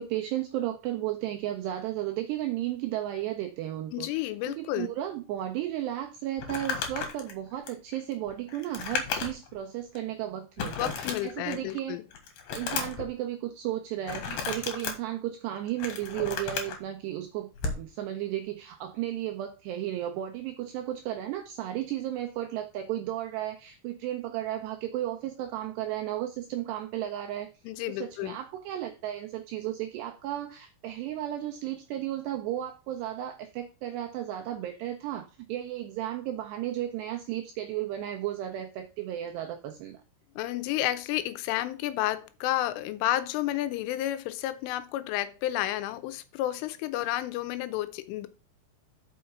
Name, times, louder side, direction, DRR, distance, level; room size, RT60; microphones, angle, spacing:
voice 1, 0.0-12.0 12.5-27.5 27.9-40.0, right 12 dB, 85° right, 2.4 m, -34 dB
voice 2, 3.9-4.9 10.8-12.0 27.7-28.4 40.4-48.3, left 14 dB, 85° left, 3.2 m, -31 dB
Crumpling crinkling, 6.4-9.6 9.9-10.0 10.6-11.7 12.1-13.1 14.0-14.9 15.6-16.8 17.6-17.8, left 6 dB, 65° left, 2.7 m, -34 dB
6.5 x 5.6 x 5.7 m
omnidirectional pair, 5.7 m